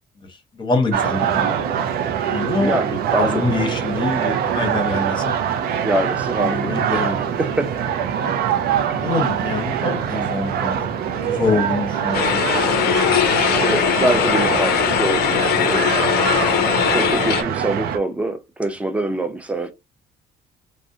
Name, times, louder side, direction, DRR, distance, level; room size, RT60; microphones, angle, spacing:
voice 1, 0.5-1.8 2.2-2.8 3.1-5.3 6.4-7.4 8.1-8.3 9.0-10.9 11.2-13.0, left 3 dB, 30° left, 0.8 m, -25 dB
sound 1, 0.9-18.0, right 8 dB, 65° right, 0.4 m, -23 dB
voice 2, 2.4-3.4 5.8-7.8 8.9-9.1 13.6-16.0 16.9-19.7, right 1 dB, 10° right, 0.5 m, -25 dB
sound 2, 12.1-17.4, left 8 dB, 70° left, 0.4 m, -19 dB
2.4 x 2.1 x 2.6 m
cardioid pair, 110°, 17 cm